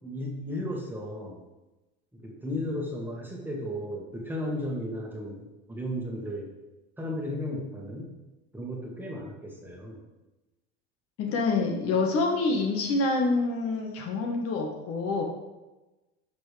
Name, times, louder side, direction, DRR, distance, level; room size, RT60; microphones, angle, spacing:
voice 1, 0.0-1.4 2.1-6.5 7.0-8.1 8.5-10.0, left 1 dB, 5° right, -2 dB, 1.7 m, -34 dB
voice 2, 11.2-15.2, left 3 dB, 45° left, 1 dB, 1.6 m, -26 dB
10.5 x 6.1 x 3.4 m, 1.1 s
supercardioid pair, 120°, 31 cm